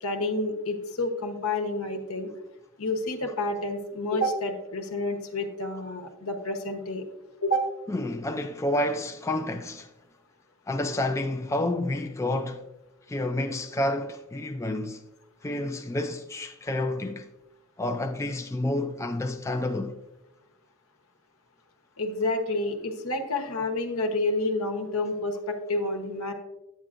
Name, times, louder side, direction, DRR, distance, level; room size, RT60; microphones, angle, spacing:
voice 1, 0.0-2.3 2.8-7.0 7.4-7.7 22.0-26.3, left 2 dB, 80° left, 1.0 m, -29 dB
voice 2, 7.9-9.9 10.7-12.6 13.1-15.0 15.4-17.3 17.8-20.0, left 1 dB, 15° left, 0.3 m, -29 dB
9.6 x 8.1 x 2.5 m
head